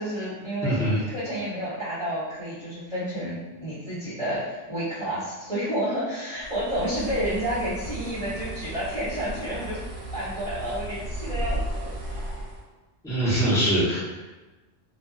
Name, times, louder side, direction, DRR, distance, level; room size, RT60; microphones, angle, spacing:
voice 1, 0.0-9.8 10.1-12.3, equal, 30° left, -15 dB, 1.2 m, -30 dB
voice 2, 0.6-1.0 13.0-14.0, right 1 dB, 5° left, -10 dB, 0.8 m, -22 dB
Bird, 6.4-12.6, right 1 dB, 80° right, 0.9 m, -34 dB
2.5 x 2.4 x 2.3 m, 1.2 s
omnidirectional pair, 1.2 m